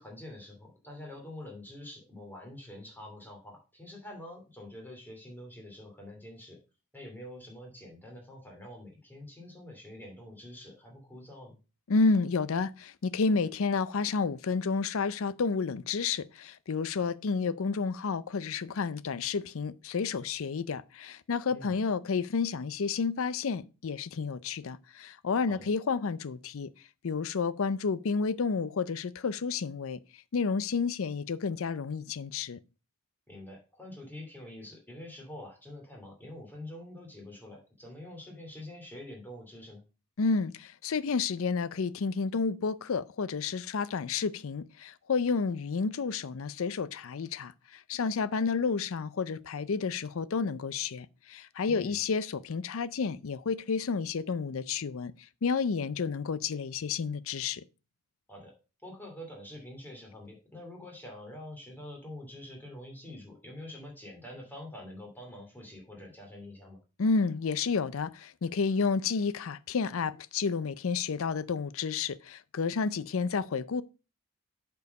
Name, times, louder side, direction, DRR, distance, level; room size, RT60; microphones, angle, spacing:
voice 1, 0.0-6.6 6.9-11.6 21.5-21.8 25.5-25.7 33.3-39.8 51.6-52.0 58.3-58.5 58.8-66.8, left 1 dB, 10° left, 2.6 m, -46 dB
voice 2, 11.9-26.7 27.0-30.0 30.3-32.6 40.2-47.5 47.9-55.1 55.4-57.6 67.0-73.8, left 5 dB, 65° left, 0.5 m, -30 dB
8.1 x 4.6 x 5.3 m
head